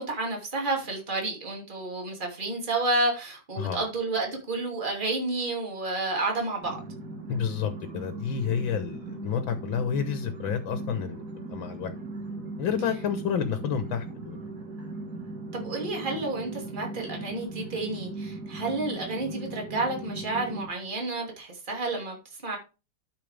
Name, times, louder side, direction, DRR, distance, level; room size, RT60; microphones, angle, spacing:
voice 1, 0.0-6.8 15.5-22.2 22.4-22.6, right 2 dB, 25° right, 2.7 m, -30 dB
sound 1, 6.6-20.7, right 2 dB, 50° right, 2.2 m, -38 dB
voice 2, 7.3-11.9 12.6-14.4, left 7 dB, 75° left, 1.8 m, -30 dB
12.5 x 5.8 x 3.4 m
omnidirectional pair, 2.2 m